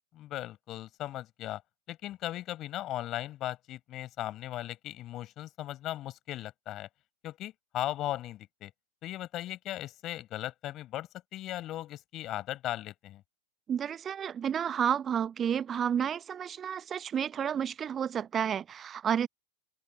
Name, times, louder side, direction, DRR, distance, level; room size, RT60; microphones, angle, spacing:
voice 1, 0.1-1.6 1.9-6.9 7.2-8.7 9.0-13.2, left 14 dB, 35° left, 5.3 m, -37 dB
voice 2, 13.7-19.3, right 8 dB, 25° right, 0.9 m, -31 dB
open air
figure-of-eight pair, 90°, 0 cm